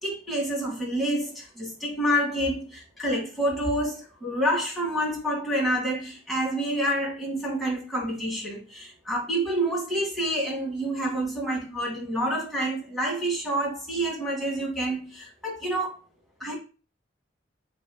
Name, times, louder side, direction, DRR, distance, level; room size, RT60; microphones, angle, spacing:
voice 1, 0.0-15.9 16.4-16.5, right 1 dB, ahead, 2.0 m, -28 dB
7.1 x 3.1 x 2.3 m
head